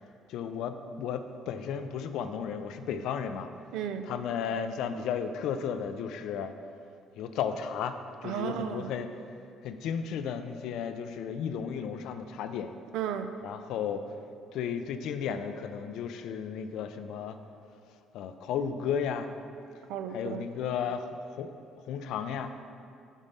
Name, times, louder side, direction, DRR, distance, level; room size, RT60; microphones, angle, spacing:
voice 1, 0.3-3.5 4.0-6.5 7.2-8.0 8.2-9.1 9.6-12.8 13.4-14.0 14.5-17.4 18.1-19.3 20.1-21.5 21.8-22.5, left 7 dB, 75° left, 9 dB, 0.4 m, -34 dB
voice 2, 3.7-4.1 8.2-8.9 12.9-13.3 19.9-20.5, right 9 dB, 80° right, 8 dB, 0.5 m, -34 dB
7.3 x 4.0 x 5.4 m, 2.4 s
cardioid pair, 90°, 0 cm